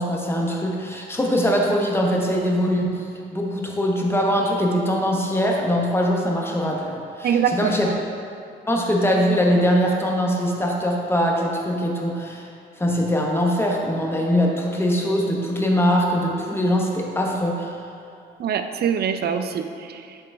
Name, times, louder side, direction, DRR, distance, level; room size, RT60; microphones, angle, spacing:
voice 1, 0.0-3.0 3.3-7.9 8.7-12.5 12.8-17.8, equal, 10° left, -1 dB, 1.1 m, -22 dB
voice 2, 7.2-7.9 18.4-20.2, right 7 dB, 55° right, 8 dB, 0.5 m, -24 dB
10.0 x 3.9 x 3.4 m, 2.5 s
cardioid pair, 90°, 20 cm